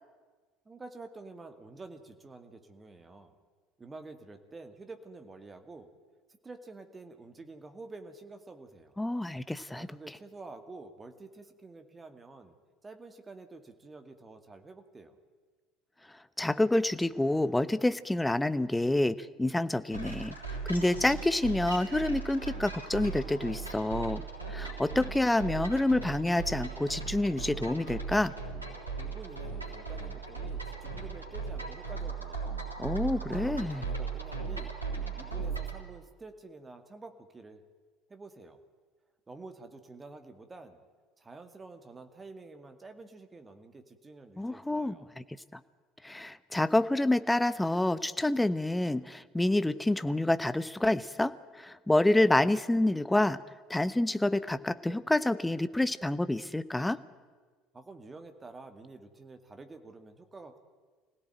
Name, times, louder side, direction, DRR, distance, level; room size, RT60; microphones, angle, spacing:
voice 1, 0.7-3.3 3.8-5.9 6.4-9.0 9.7-12.5 12.8-15.2 29.0-32.7 33.3-34.8 35.1-37.6 38.1-38.6 39.3-40.8 41.2-45.1 57.7-60.6, right 3 dB, 20° right, 8 dB, 2.1 m, -49 dB
voice 2, 9.0-9.9 16.4-20.3 20.7-24.2 24.5-28.3 32.8-33.8 44.4-45.2 45.5-45.6 46.0-53.4 53.7-57.0, left 1 dB, 10° left, 14 dB, 0.9 m, -28 dB
sound 1, 19.9-35.8, right 5 dB, 85° right, 3.6 m, -38 dB
24.5 x 17.0 x 9.1 m, 1.4 s
figure-of-eight pair, 65°, 0 cm